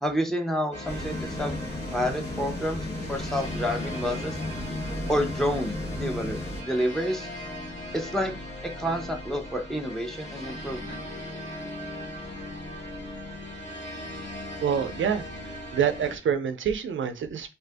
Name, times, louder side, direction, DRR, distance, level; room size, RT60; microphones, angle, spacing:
voice 1, 0.0-1.6 1.9-2.8 3.1-4.4 5.1-7.3 7.9-8.4 8.6-11.0, equal, ahead, 2 dB, 0.7 m, -29 dB
sound 1, 0.7-16.2, left 1 dB, 35° left, 1.2 m, -38 dB
sound 2, 0.8-6.6, left 1 dB, 55° left, 1.2 m, -34 dB
voice 2, 14.6-15.2 15.7-17.5, right 8 dB, 80° right, 8 dB, 0.5 m, -26 dB
2.7 x 2.5 x 3.3 m, 0.27 s
wide cardioid pair, 80°, 20 cm